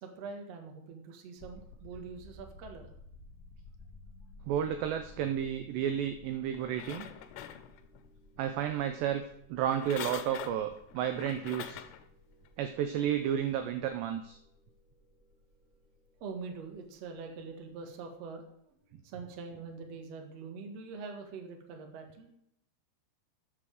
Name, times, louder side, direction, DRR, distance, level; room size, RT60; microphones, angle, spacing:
voice 1, 0.0-2.9 16.2-18.4 18.9-22.3, right 4 dB, 60° right, 3 dB, 1.8 m, -44 dB
sound 1, 1.4-18.3, left 2 dB, 55° left, 1.0 m, -56 dB
voice 2, 4.5-7.1 8.4-9.2 9.5-11.8 12.6-14.4, right 10 dB, 80° right, 8 dB, 2.5 m, -32 dB
sound 2, 6.5-8.1 9.6-12.1 12.6-12.7, left 11 dB, 85° left, 3.3 m, -44 dB
13.0 x 7.9 x 4.9 m, 0.75 s
omnidirectional pair, 5.8 m